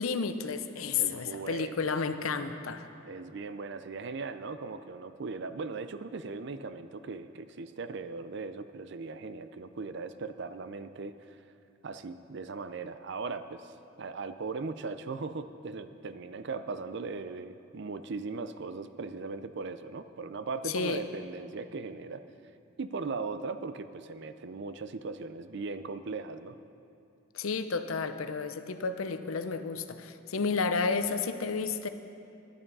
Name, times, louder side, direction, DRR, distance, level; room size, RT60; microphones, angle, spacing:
voice 1, 0.0-2.9 20.6-21.0 27.3-31.9, left 5 dB, 90° left, 10 dB, 0.7 m, -31 dB
voice 2, 1.0-1.8 3.1-11.1 11.8-22.2 22.8-26.6, right 4 dB, 60° right, 11 dB, 0.5 m, -38 dB
11.5 x 11.5 x 5.4 m, 2.6 s
head